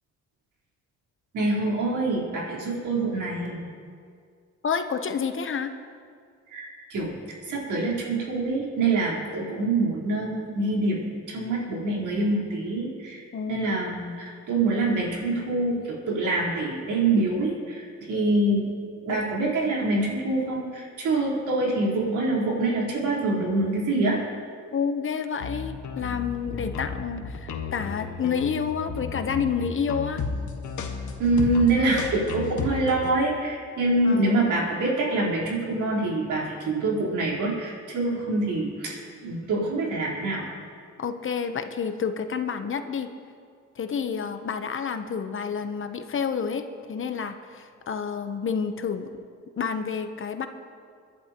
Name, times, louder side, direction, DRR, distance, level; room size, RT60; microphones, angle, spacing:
voice 1, 1.3-3.7 6.5-7.2 7.5-13.2 13.5-14.1 14.5-18.7 19.0-24.2 31.2-40.4, right 2 dB, 80° right, -4 dB, 4.0 m, -25 dB
voice 2, 4.6-5.7 13.3-13.7 24.7-30.2 31.8-31.9 32.1-32.3 34.0-34.5 41.0-43.1 43.8-49.1 49.6-50.5, left 6 dB, 40° left, 8 dB, 0.9 m, -29 dB
sound 1, 25.4-33.1, left 5 dB, 75° left, 1.5 m, -33 dB
25.5 x 11.0 x 3.0 m, 2.2 s
cardioid pair, 90°, 30 cm